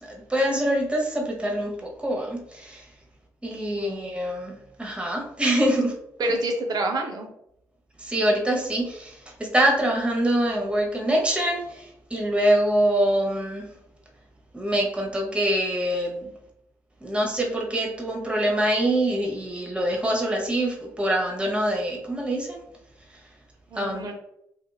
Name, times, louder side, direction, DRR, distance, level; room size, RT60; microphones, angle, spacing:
voice 1, 0.0-2.8 3.4-5.9 8.0-13.6 14.5-16.3 17.0-22.6 23.8-24.1, right 1 dB, 15° right, -1 dB, 1.0 m, -25 dB
voice 2, 3.7-4.1 6.2-7.3 23.7-24.1, right 2 dB, 50° right, 3 dB, 0.7 m, -28 dB
2.8 x 2.5 x 2.2 m, 0.77 s
hypercardioid pair, 45°, 9 cm